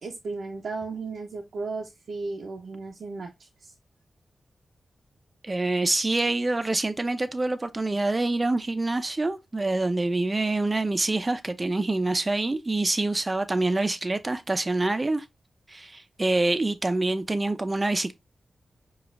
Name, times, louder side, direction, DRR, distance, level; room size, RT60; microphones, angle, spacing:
voice 1, 0.0-3.7, right 3 dB, 80° right, 0.6 m, -35 dB
voice 2, 5.4-15.2 15.7-18.1, right 2 dB, 30° right, 0.6 m, -26 dB
5.0 x 2.4 x 2.4 m
cardioid pair, 55°, 0 cm